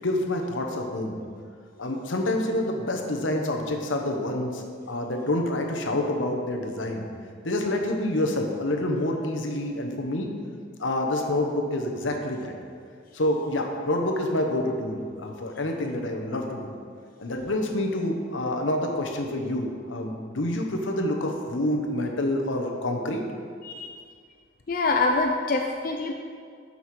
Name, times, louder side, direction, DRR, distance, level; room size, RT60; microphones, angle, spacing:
voice 1, 0.0-1.2 1.8-7.0 7.4-10.3 10.8-12.5 13.1-16.7 17.2-23.2, left 1 dB, 80° left, 2 dB, 1.0 m, -27 dB
voice 2, 23.6-24.0 24.7-26.1, left 3 dB, 45° left, 2 dB, 0.5 m, -25 dB
7.1 x 5.6 x 6.1 m, 2.1 s
head